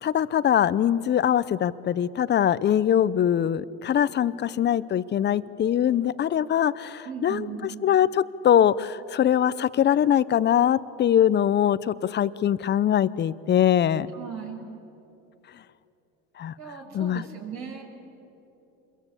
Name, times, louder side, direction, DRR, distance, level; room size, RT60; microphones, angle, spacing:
voice 1, 0.0-14.1 16.4-16.5 16.9-17.2, left 10 dB, 30° left, 17 dB, 0.7 m, -22 dB
voice 2, 7.0-7.7 14.1-14.6 16.6-17.8, right 7 dB, 55° right, 0 dB, 5.9 m, -37 dB
27.5 x 22.5 x 8.4 m, 2.9 s
supercardioid pair, 110°, 33 cm